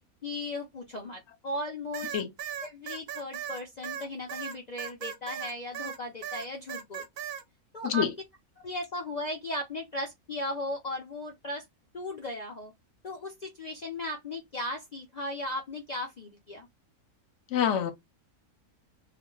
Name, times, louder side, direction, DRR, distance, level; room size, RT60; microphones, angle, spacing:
voice 1, 0.2-2.2 2.6-7.0 7.7-8.0 8.6-11.6 11.9-12.7 13.0-16.7, left 1 dB, 75° left, 0.4 m, -36 dB
sound 1, 1.9-6.0 6.2-7.4, right 9 dB, 90° right, 1.1 m, -37 dB
voice 2, 17.5-17.9, left 9 dB, 60° left, 0.9 m, -26 dB
2.5 x 2.1 x 3.7 m
omnidirectional pair, 1.6 m